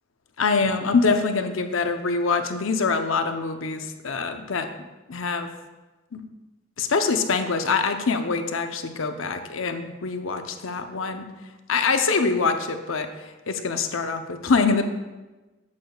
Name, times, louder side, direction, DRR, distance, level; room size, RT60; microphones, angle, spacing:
voice 1, 0.4-4.7 5.1-5.5 6.1-6.2 6.8-11.3 11.7-13.1 13.5-14.9, left 4 dB, 75° left, 6 dB, 0.7 m, -24 dB
11.5 x 8.3 x 2.4 m, 1.1 s
head